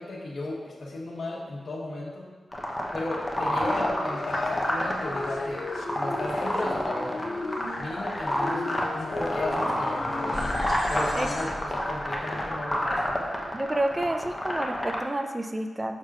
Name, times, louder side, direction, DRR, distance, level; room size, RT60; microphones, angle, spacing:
voice 1, 0.0-2.3 2.9-5.6 5.9-7.2 7.8-10.4 10.9-13.1, left 2 dB, 70° left, -6 dB, 1.3 m, -35 dB
sound 1, 2.5-15.0, left 1 dB, 20° left, 0.9 m, -29 dB
sound 2, 3.6-10.7, left 2 dB, 85° left, 0.5 m, -35 dB
sound 3, 8.0-13.9, left 2 dB, 50° left, 0.9 m, -42 dB
voice 2, 13.5-16.0, right 1 dB, 20° right, 6 dB, 0.5 m, -29 dB
6.5 x 6.2 x 2.5 m, 1.5 s
cardioid pair, 80°, 0 cm